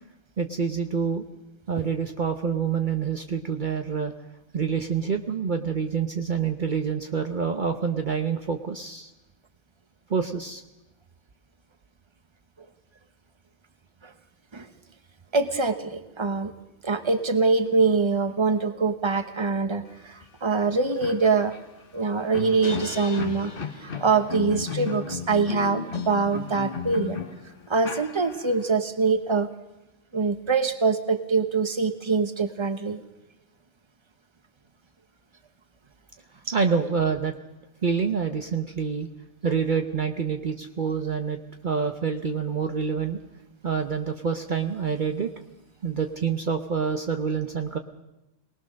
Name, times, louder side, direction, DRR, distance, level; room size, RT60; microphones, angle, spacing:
voice 1, 0.4-1.2 1.7-4.1 4.5-9.1 10.1-10.6 36.5-37.3 37.8-39.1 39.4-43.2 43.6-45.3 45.8-47.8, right 6 dB, 50° right, 5 dB, 1.0 m, -27 dB
voice 2, 15.3-16.5 16.8-21.6 21.9-23.5 23.8-27.2 27.7-29.5 30.1-33.0 36.5-36.6, right 4 dB, 25° right, 9 dB, 1.2 m, -24 dB
sound 1, 20.2-20.3 20.6-28.7, left 6 dB, 55° left, 1.4 m, -34 dB
23.5 x 19.5 x 6.4 m, 0.96 s
omnidirectional pair, 1.1 m